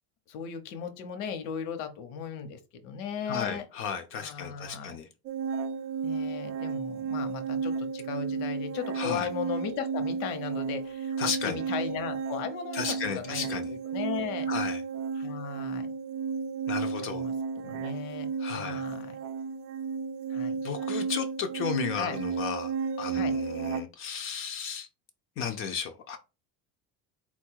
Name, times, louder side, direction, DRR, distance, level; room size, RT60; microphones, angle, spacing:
voice 1, 0.3-3.7 4.2-5.0 6.0-14.5 15.1-15.9 17.1-19.2 20.3-20.6 22.0-22.2 23.1-23.3, left 7 dB, 85° left, 0.9 m, -37 dB
voice 2, 3.3-5.1 9.0-9.3 11.2-11.6 12.7-13.7 14.5-14.8 16.7-17.3 18.4-18.8 20.6-22.7 23.0-24.9 25.4-26.2, left 7 dB, 40° left, 0.4 m, -34 dB
Singing Bowl singing, 5.3-23.8, right 5 dB, 60° right, 0.5 m, -33 dB
4.3 x 2.3 x 4.5 m
cardioid pair, 175°, 35 cm